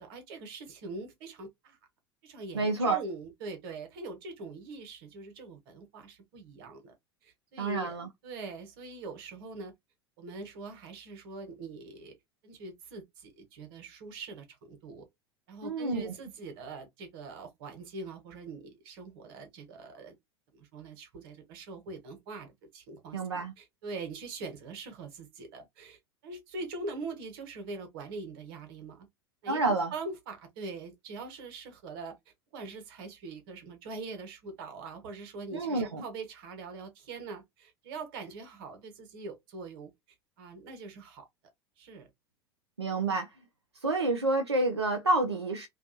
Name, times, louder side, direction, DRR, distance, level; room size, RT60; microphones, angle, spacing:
voice 1, 0.0-1.8 2.2-6.9 7.2-8.0 8.2-9.7 10.2-12.1 12.4-15.1 15.5-20.1 20.5-29.1 29.4-32.2 32.5-39.9 40.4-41.3 41.8-42.1, right 3 dB, 60° right, 1.1 m, -43 dB
voice 2, 2.5-3.0 7.6-8.1 15.6-16.1 23.1-23.5 29.5-29.9 35.5-36.0 42.8-43.3 43.8-45.7, right 2 dB, 90° right, 0.5 m, -28 dB
2.5 x 2.3 x 2.5 m
figure-of-eight pair, 80°, 14 cm